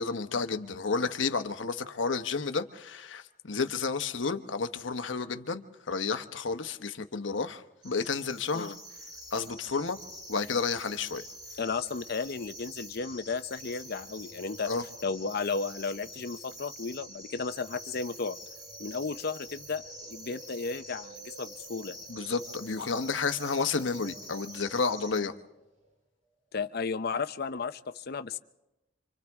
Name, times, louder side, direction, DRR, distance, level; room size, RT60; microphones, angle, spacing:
voice 1, 0.0-8.7 9.3-10.0 10.3-11.2 14.7-14.8 22.1-25.3, left 4 dB, 80° left, 8 dB, 1.1 m, -31 dB
sound 1, 7.8-25.2, equal, 20° right, 3.6 m, -47 dB
sound 2, 9.0-26.0, right 2 dB, 40° right, 1.5 m, -56 dB
voice 2, 11.6-14.7 15.0-18.4 18.8-21.9 26.5-28.4, left 4 dB, 55° left, 11 dB, 0.6 m, -34 dB
30.0 x 25.5 x 3.6 m, 0.98 s
head